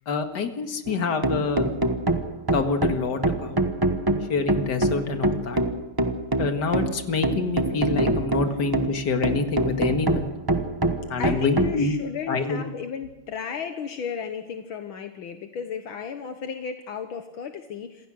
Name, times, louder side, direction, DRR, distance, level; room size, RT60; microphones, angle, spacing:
voice 1, 0.1-1.7 2.5-3.6 4.3-5.6 6.4-10.3 11.1-11.9 12.3-12.6, left 4 dB, 55° left, 5 dB, 2.4 m, -26 dB
sound 1, 0.9-11.8, right 2 dB, 15° right, 0.8 m, -25 dB
voice 2, 11.2-18.1, left 7 dB, 75° left, 6 dB, 2.0 m, -34 dB
27.5 x 16.0 x 6.4 m, 0.96 s
omnidirectional pair, 2.3 m